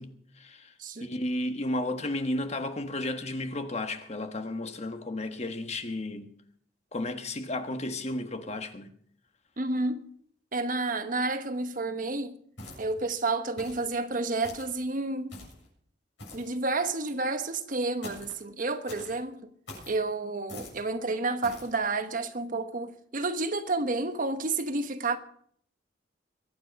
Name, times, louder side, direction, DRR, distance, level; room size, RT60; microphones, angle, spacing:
voice 1, 0.0-0.7 1.0-6.3 6.9-8.9, left 1 dB, 35° left, 1.3 m, -33 dB
voice 2, 9.6-10.0 10.5-12.4 12.8-15.4 16.3-19.4 19.9-25.2, right 3 dB, 45° right, 1.1 m, -30 dB
sound 1, 12.6-13.1 13.6-13.9 14.4-14.8 15.3-15.7 16.2-16.6 18.0-18.4 18.9-19.2 19.7-20.0 20.5-20.8 21.4-21.7, left 2 dB, 75° left, 7.6 m, -44 dB
22.5 x 9.4 x 5.3 m
head